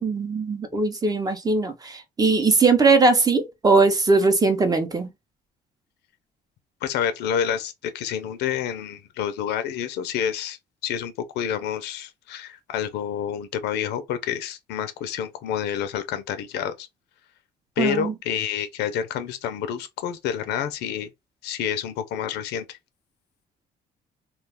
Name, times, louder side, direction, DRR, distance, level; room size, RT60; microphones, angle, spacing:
voice 1, 0.0-5.1 17.8-18.1, right 3 dB, 20° right, 0.7 m, -20 dB
voice 2, 6.8-10.6 10.8-16.9 17.8-21.1 21.4-22.8, left 9 dB, 85° left, 0.5 m, -28 dB
2.4 x 2.3 x 3.3 m
cardioid pair, 110°, 17 cm